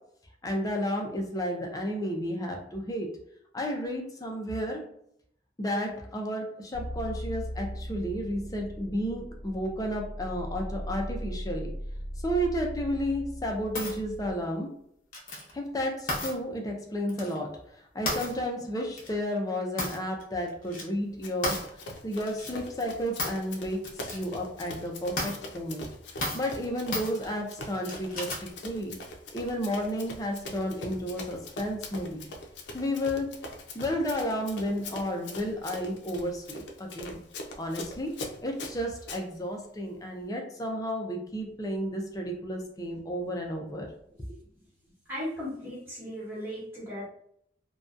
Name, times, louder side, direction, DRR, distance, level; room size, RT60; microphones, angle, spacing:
voice 1, 0.4-3.1 3.5-4.8 5.6-11.7 12.2-14.7 15.5-17.6 17.9-21.6 22.0-25.9 26.3-29.0 29.3-32.3 32.7-33.4 33.7-37.2 37.6-38.1 38.4-43.9, equal, 20° left, 2 dB, 0.4 m, -32 dB
sound 1, 6.7-14.3, equal, 90° right, 1.2 m, -38 dB
sound 2, 13.7-14.0 15.1-15.5 16.1-16.3 17.1-17.4 18.0-18.4 19.0-19.1 19.8-20.2 20.5-20.8 21.4-21.7 22.2-22.5 23.2-23.4 23.8-24.2 24.6-24.7 25.2-25.4 26.2-26.5 26.9-27.1 27.9-28.5, left 2 dB, 50° left, 0.7 m, -33 dB
Run, 21.2-39.2, left 2 dB, 85° left, 0.4 m, -42 dB
voice 2, 45.0-47.0, equal, 15° right, -8 dB, 1.1 m, -36 dB
2.6 x 2.2 x 2.4 m, 0.71 s
head